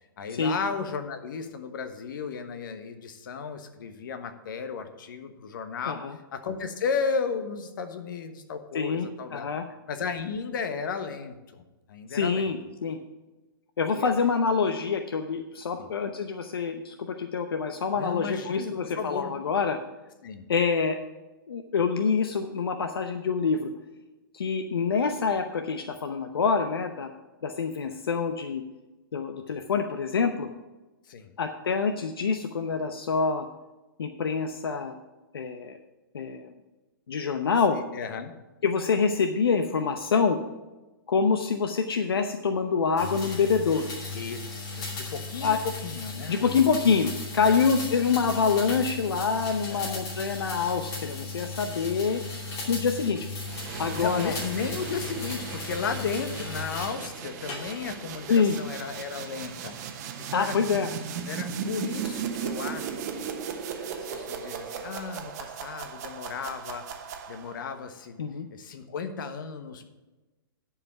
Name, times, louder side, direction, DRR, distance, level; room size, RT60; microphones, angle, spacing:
voice 1, 0.2-6.0 6.3-9.5 9.9-11.6 11.9-12.5 13.9-14.1 15.8-15.9 17.9-19.3 20.2-20.5 31.1-31.3 37.7-38.3 43.5-43.6 44.1-46.4 47.4-47.8 49.7-50.2 51.7-52.0 54.0-60.5 61.3-63.3 63.7-66.8 67.3-68.2 68.5-69.9, left 5 dB, 60° left, 8 dB, 1.2 m, -34 dB
voice 2, 8.7-9.6 12.1-13.0 13.8-19.8 20.5-21.0 21.5-23.7 24.3-27.1 27.4-28.6 29.1-30.5 31.4-33.5 34.0-35.0 35.3-35.8 36.1-36.5 37.1-37.8 38.6-40.4 41.1-43.9 45.4-45.6 46.3-52.2 52.7-53.3 53.8-54.3 58.3-58.6 60.3-60.9 68.2-68.5, left 5 dB, 80° left, 6 dB, 0.8 m, -26 dB
sound 1, 43.0-57.0 57.5-58.0, left 3 dB, 30° left, 2.7 m, -36 dB
sound 2, 53.4-67.7, right 7 dB, 45° right, 1.1 m, -37 dB
10.5 x 4.9 x 8.0 m, 1.1 s
hypercardioid pair, 135°, 12 cm